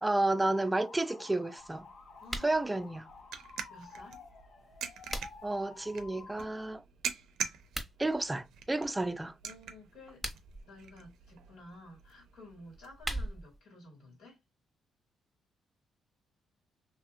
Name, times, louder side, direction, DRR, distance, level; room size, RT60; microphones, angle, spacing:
voice 1, 0.0-1.9 2.4-3.1 5.4-6.8 8.0-9.4, right 2 dB, 15° right, 0.4 m, -31 dB
sound 1, 0.5-6.5, left 4 dB, 55° left, 0.6 m, -52 dB
sound 2, 1.6-12.9, right 7 dB, 80° right, 0.5 m, -45 dB
voice 2, 2.2-2.8 3.7-4.2 9.4-10.2 10.7-14.4, left 1 dB, 85° left, 2.2 m, -53 dB
sound 3, 2.2-2.6 4.6-5.6 7.6-7.9 10.0-10.6 12.6-13.6, right 1 dB, ahead, 1.0 m, -40 dB
3.0 x 2.9 x 2.3 m
cardioid pair, 90°, 0 cm